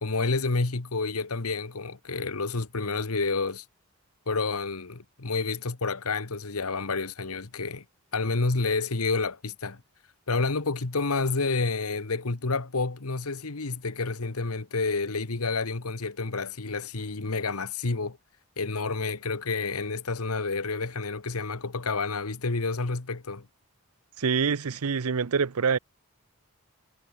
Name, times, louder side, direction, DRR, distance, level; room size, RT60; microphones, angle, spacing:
voice 1, 0.0-3.6 4.3-7.8 8.1-9.8 10.3-18.2 18.6-23.5, left 3 dB, 85° left, 1.4 m, -29 dB
voice 2, 24.2-25.8, right 5 dB, 85° right, 0.7 m, -25 dB
head